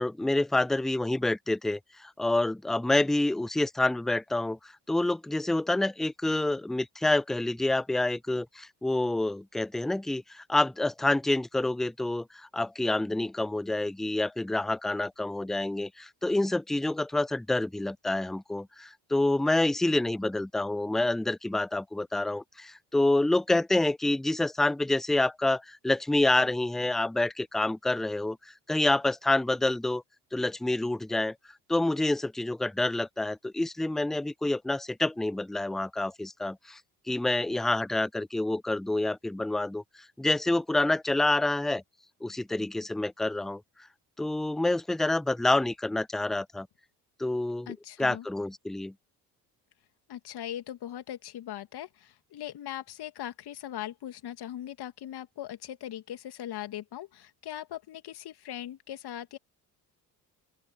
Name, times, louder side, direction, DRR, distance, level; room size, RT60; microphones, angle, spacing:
voice 1, 0.0-30.0 30.3-31.4 31.7-36.8 37.1-41.8 42.2-43.6 44.2-46.7 47.2-48.9, left 2 dB, ahead, 0.3 m, -28 dB
voice 2, 47.7-48.3 50.1-59.4, left 11 dB, 50° left, 2.7 m, -40 dB
open air
figure-of-eight pair, 55°, 48 cm